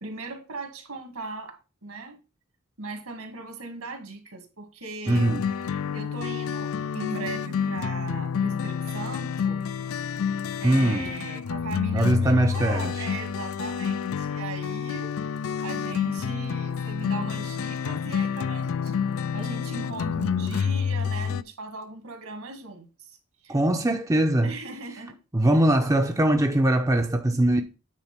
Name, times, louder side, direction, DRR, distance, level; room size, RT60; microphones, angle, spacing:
voice 1, 0.0-2.2 2.8-9.6 9.9-10.0 10.6-15.1 15.6-19.0 19.3-23.2 23.4-23.6 24.4-25.2 25.5-25.6, right 3 dB, 70° right, 2.2 m, -38 dB
sound 1, 5.1-21.4, left 7 dB, 65° left, 0.4 m, -29 dB
voice 2, 5.1-5.4 10.6-11.1 11.9-13.1 23.5-24.5 25.3-27.6, right 1 dB, 15° right, 0.6 m, -21 dB
9.1 x 4.1 x 5.7 m
head